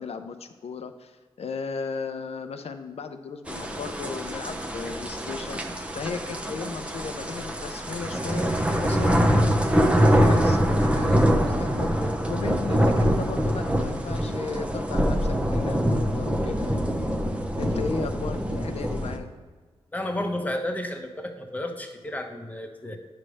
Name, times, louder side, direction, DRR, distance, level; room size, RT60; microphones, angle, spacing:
voice 1, 0.0-16.8 17.6-19.3, left 5 dB, 70° left, 8 dB, 0.6 m, -36 dB
sound 1, 3.5-19.2, equal, 10° right, 0.8 m, -24 dB
voice 2, 19.9-23.0, left 1 dB, 15° left, 3 dB, 1.0 m, -32 dB
9.7 x 3.3 x 6.3 m, 1.4 s
cardioid pair, 80°, 11 cm